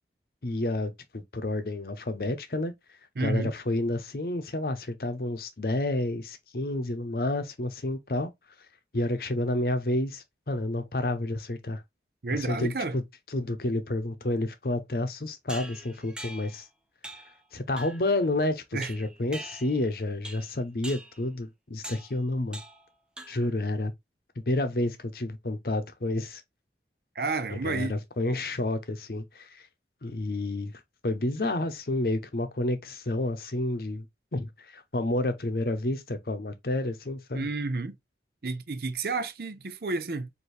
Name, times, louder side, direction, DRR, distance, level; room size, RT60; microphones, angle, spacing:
voice 1, 0.4-2.7 3.2-8.3 8.9-11.8 12.3-13.0 13.3-16.7 17.5-22.6 23.3-23.9 24.5-26.4 27.5-29.7 30.0-34.0 34.3-37.5, left 2 dB, 55° left, 0.7 m, -30 dB
voice 2, 3.2-3.5 12.2-13.0 18.7-18.9 27.2-28.0 37.3-38.0 38.4-40.3, right 3 dB, 55° right, 0.6 m, -30 dB
sound 1, 15.5-16.6 17.0-17.4 17.8-18.1 18.8-19.9 20.2-20.5 20.8-21.2 21.8-22.1 22.5-22.9 23.2-23.6, right 1 dB, 5° right, 0.5 m, -43 dB
4.4 x 2.7 x 3.2 m
head